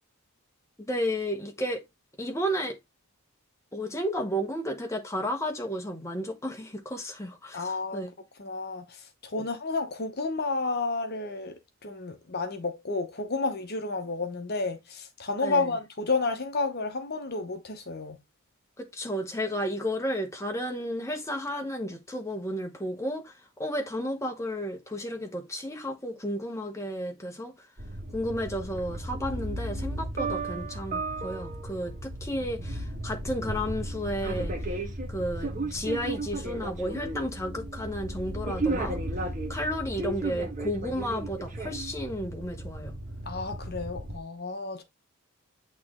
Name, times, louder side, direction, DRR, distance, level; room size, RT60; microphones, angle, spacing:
voice 1, 0.8-1.8 2.2-2.8 3.7-8.1 15.4-15.7 18.8-27.5 28.1-34.5 35.1-39.0 39.5-43.0, equal, 15° left, 1.1 m, -32 dB
voice 2, 7.5-8.0 8.4-18.2 43.3-44.8, left 3 dB, 45° left, 0.9 m, -31 dB
sound 1, 27.8-44.2, right 2 dB, 35° right, 1.6 m, -34 dB
8.7 x 3.2 x 3.7 m
head